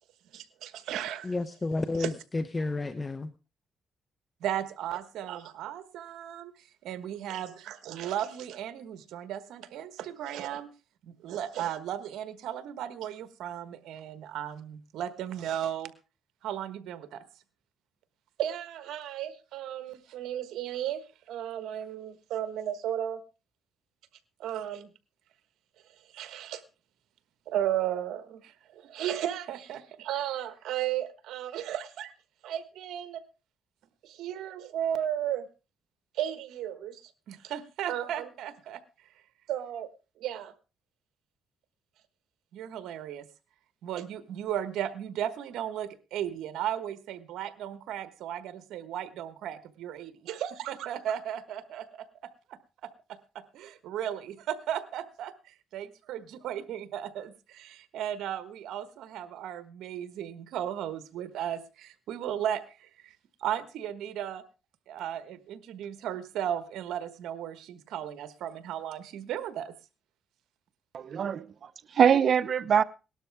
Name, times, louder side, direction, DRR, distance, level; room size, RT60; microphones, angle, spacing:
voice 1, 0.3-1.3 2.0-2.1 4.4-6.5 6.8-10.7 11.1-15.9 16.4-17.2 18.4-21.0 21.3-23.2 24.4-24.9 26.1-26.6 27.5-32.1 32.4-33.2 34.0-35.4 36.1-38.8 39.5-39.9 40.2-40.5 42.5-43.3 43.8-52.0 53.5-63.1 63.4-64.4 64.9-69.7, right 10 dB, 85° right, 1.3 m, -35 dB
voice 2, 1.2-3.3, left 2 dB, 25° left, 0.9 m, -31 dB
voice 3, 70.9-72.8, right 8 dB, 55° right, 0.8 m, -24 dB
18.5 x 12.5 x 3.5 m
cardioid pair, 90°, 0 cm